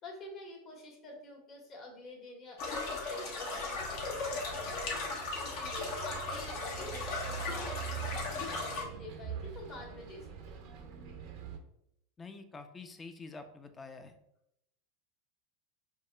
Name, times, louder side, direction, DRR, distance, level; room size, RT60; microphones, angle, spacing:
voice 1, 0.0-10.6, left 2 dB, 45° left, 0 dB, 1.2 m, -48 dB
sound 1, 2.6-8.8, left 3 dB, 65° left, 0.9 m, -37 dB
Bus, 3.8-11.6, right 7 dB, 60° right, 0.5 m, -44 dB
voice 2, 12.2-14.2, left 4 dB, 20° left, 8 dB, 0.4 m, -47 dB
4.6 x 2.3 x 2.2 m, 0.78 s
hypercardioid pair, 90°, 0 cm